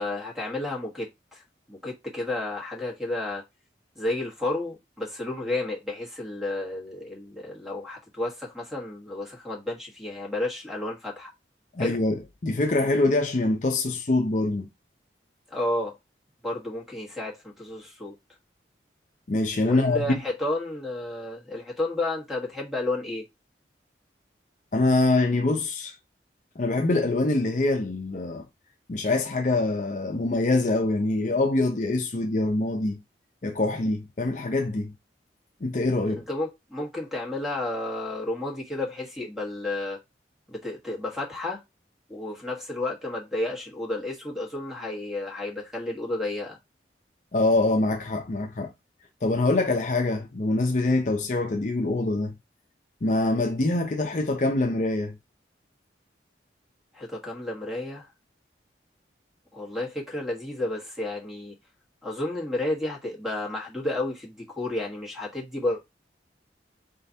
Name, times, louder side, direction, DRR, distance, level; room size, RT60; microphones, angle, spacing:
voice 1, 0.0-3.4 3.9-11.3 11.8-12.0 15.5-16.0 16.4-18.2 19.6-23.2 36.3-40.0 40.5-41.6 42.1-46.6 56.9-58.1 59.5-61.5 62.0-65.8, left 2 dB, ahead, 1.2 m, -31 dB
voice 2, 11.7-14.7 19.3-20.2 24.7-25.9 26.6-28.4 28.9-33.0 33.4-34.9 35.6-36.2 47.3-48.7 49.2-52.3 53.0-55.2, left 2 dB, 45° left, 0.5 m, -24 dB
4.1 x 3.7 x 2.7 m
head